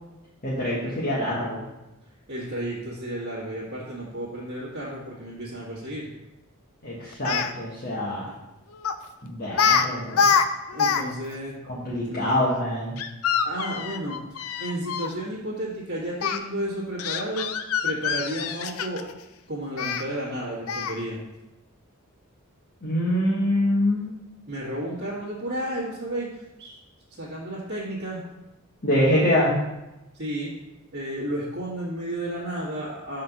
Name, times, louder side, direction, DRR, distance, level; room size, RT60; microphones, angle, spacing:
voice 1, 0.4-1.6 6.8-8.3 9.2-10.3 11.7-12.9 22.8-24.1 28.8-29.5, left 1 dB, 45° left, -8 dB, 1.4 m, -25 dB
voice 2, 2.3-6.1 8.3-8.4 10.7-11.6 12.0-12.3 13.4-17.5 17.8-19.0 19.5-21.2 24.5-26.8 27.2-28.2 30.1-30.5 30.9-33.2, right 1 dB, 55° right, -9 dB, 1.7 m, -32 dB
Speech, 7.1-7.5 8.8-9.1 9.5-9.9 10.1-11.0 11.3-11.4 13.0-15.1 16.2-16.4 17.0-19.1 19.8-20.0 20.7-21.0, left 6 dB, 70° left, 0.4 m, -25 dB
5.6 x 3.9 x 6.0 m, 0.96 s
head